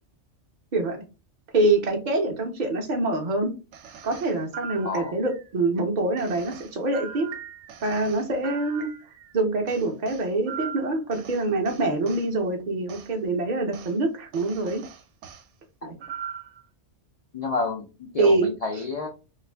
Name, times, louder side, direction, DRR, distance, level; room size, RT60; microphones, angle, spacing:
voice 1, 0.7-1.0 1.5-3.5 4.0-7.3 7.8-8.9 9.3-14.8 15.8-15.9 18.2-18.5, right 2 dB, 55° right, 2 dB, 0.5 m, -25 dB
sound 1, 3.7-5.5 6.2-9.3 9.7-12.3 12.9-13.1 13.7-13.9 14.3-15.4 16.0-16.6, right 7 dB, 75° right, 0.9 m, -40 dB
voice 2, 4.8-5.2 17.3-19.1, left 3 dB, 80° left, 2 dB, 0.3 m, -30 dB
2.4 x 2.4 x 3.2 m, 0.31 s
omnidirectional pair, 1.2 m